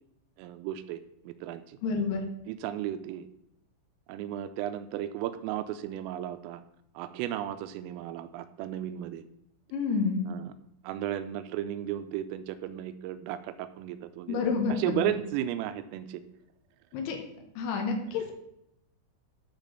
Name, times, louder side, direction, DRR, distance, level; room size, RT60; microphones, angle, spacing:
voice 1, 0.4-1.0 1.3-1.8 2.5-3.3 4.1-6.6 7.0-9.2 10.3-10.5 10.8-14.4 14.7-16.2, right 12 dB, 85° right, 11 dB, 3.3 m, -34 dB
voice 2, 1.8-2.2 9.7-10.3 14.3-15.1 16.9-17.2 17.6-18.3, left 5 dB, 70° left, 3 dB, 2.8 m, -29 dB
11.5 x 4.4 x 6.6 m, 0.78 s
omnidirectional pair, 5.8 m